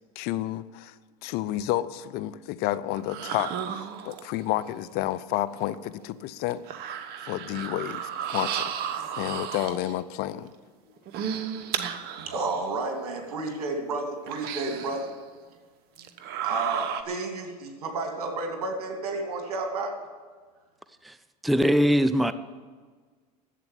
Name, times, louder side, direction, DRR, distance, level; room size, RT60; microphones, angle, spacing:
voice 1, 0.2-0.9 1.2-6.6 7.3-8.7 9.2-10.5, left 14 dB, 55° left, 16 dB, 0.7 m, -30 dB
sound 1, 3.0-4.5 5.7-5.8 6.5-10.0 11.0-12.6 13.2-13.3 14.3-15.2 16.0-17.0, right 8 dB, 55° right, 1.1 m, -33 dB
voice 2, 12.2-15.1 16.2-20.0, right 3 dB, 80° right, 3 dB, 2.8 m, -31 dB
voice 3, 21.4-22.3, equal, ahead, 13 dB, 0.5 m, -21 dB
11.0 x 8.2 x 9.2 m, 1.5 s
hypercardioid pair, 90°, 19 cm